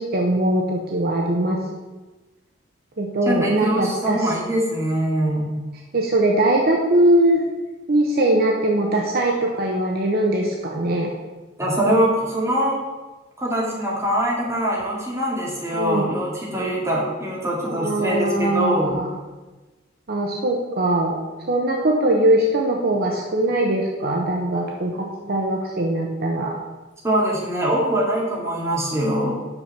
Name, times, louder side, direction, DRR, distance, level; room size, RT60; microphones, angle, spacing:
voice 1, 0.0-1.6 3.0-4.3 5.9-7.4 7.9-11.1 15.7-16.0 17.6-19.1 20.1-21.2 21.5-26.5, right 1 dB, 50° right, 1 dB, 0.8 m, -21 dB
voice 2, 3.3-5.5 11.6-12.8 13.4-18.9 27.0-29.4, right 1 dB, 15° right, -5 dB, 2.4 m, -23 dB
6.0 x 5.9 x 6.6 m, 1.2 s
head